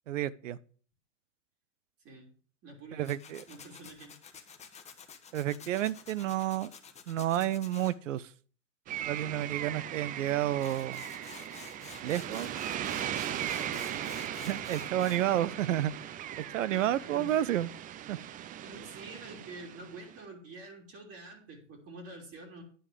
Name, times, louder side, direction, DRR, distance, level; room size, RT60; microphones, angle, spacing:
voice 1, 0.1-0.6 3.0-3.4 5.3-6.7 7.1-8.3 9.1-11.0 12.0-12.5 14.4-15.9 16.4-17.7 18.1-18.2, right 12 dB, 85° right, 0.7 m, -30 dB
voice 2, 2.6-3.1 3.5-4.5 12.9-15.3 16.7-17.5 18.6-22.6, right 2 dB, 40° right, 3.4 m, -48 dB
Tools, 3.0-7.9 10.3-10.4 10.6-15.2, left 6 dB, 20° left, 1.4 m, -50 dB
sound 1, 8.9-20.2, right 11 dB, 25° right, 0.4 m, -39 dB
10.0 x 4.9 x 7.5 m
hypercardioid pair, 115°, 37 cm